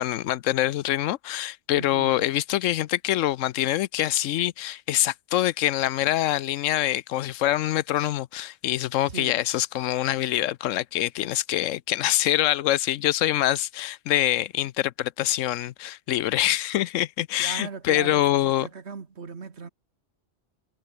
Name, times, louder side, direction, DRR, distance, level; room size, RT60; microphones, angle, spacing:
voice 1, 0.0-18.7, left 13 dB, 85° left, 1.0 m, -25 dB
voice 2, 1.8-2.3 9.1-9.4 17.4-19.7, right 5 dB, 60° right, 1.9 m, -38 dB
omnidirectional pair, 1.3 m